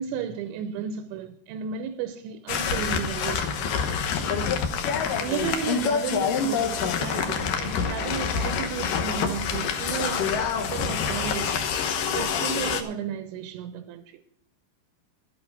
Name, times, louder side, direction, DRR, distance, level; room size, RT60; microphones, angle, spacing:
voice 1, 0.0-3.6 5.2-11.6 12.2-14.2, right 8 dB, 85° right, 3.1 m, -33 dB
sound 1, 2.5-12.8, left 6 dB, 70° left, 2.0 m, -27 dB
12.0 x 10.5 x 4.6 m
omnidirectional pair, 5.2 m